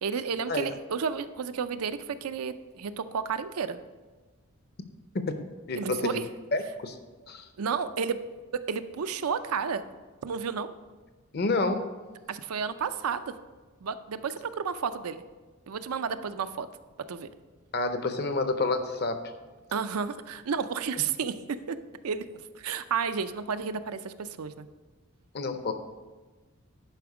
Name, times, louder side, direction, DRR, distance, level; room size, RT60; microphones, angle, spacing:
voice 1, 0.0-3.8 5.8-6.2 7.6-8.2 8.5-9.8 10.2-10.7 12.3-13.3 13.8-15.2 15.7-16.7 17.1-17.3 19.7-21.4 21.7-21.8 22.0-22.3 22.5-24.7, right 6 dB, 85° right, 11 dB, 0.5 m, -31 dB
voice 2, 5.7-7.0 7.3-7.5 11.3-11.9 17.7-19.3 25.3-25.7, left 3 dB, 45° left, 8 dB, 0.7 m, -29 dB
10.5 x 5.1 x 4.8 m, 1.3 s
head